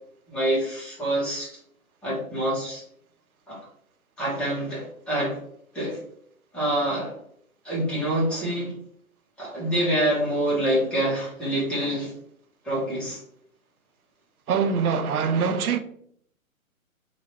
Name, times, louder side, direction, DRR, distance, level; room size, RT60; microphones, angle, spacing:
voice 1, 0.3-1.5 2.0-2.8 3.5-3.6 4.2-5.4 5.7-6.0 6.5-7.1 7.6-8.7 9.4-12.1 12.6-13.2, right 1 dB, ahead, 1.0 m, -26 dB
voice 2, 14.5-15.8, right 6 dB, 85° right, 0.5 m, -23 dB
2.9 x 2.5 x 3.0 m
hypercardioid pair, 130°, 43 cm